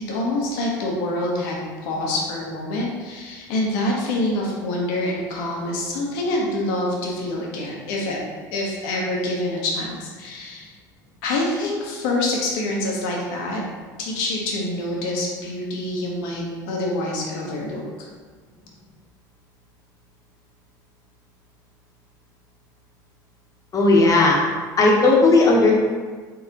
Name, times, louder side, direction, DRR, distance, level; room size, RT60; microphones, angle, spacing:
voice 1, 0.1-8.2 8.5-10.7 11.2-13.6 14.0-18.1, left 1 dB, 75° left, -2 dB, 1.0 m, -26 dB
voice 2, 23.7-24.4 24.8-25.7, left 2 dB, 35° left, -2 dB, 1.0 m, -15 dB
3.9 x 3.5 x 2.9 m, 1.5 s
supercardioid pair, 85°, 10 cm